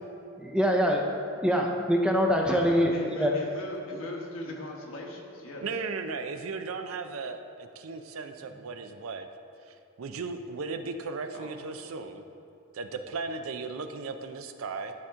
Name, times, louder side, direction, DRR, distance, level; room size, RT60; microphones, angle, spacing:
voice 1, 0.4-3.3, equal, 5° right, 1 dB, 0.5 m, -24 dB
voice 2, 2.5-5.7 11.3-11.6, left 1 dB, 70° left, -1 dB, 1.2 m, -40 dB
voice 3, 5.6-9.3 9.7-12.2 12.7-14.9, right 4 dB, 80° right, 8 dB, 0.5 m, -36 dB
11.5 x 4.4 x 3.6 m, 2.8 s
head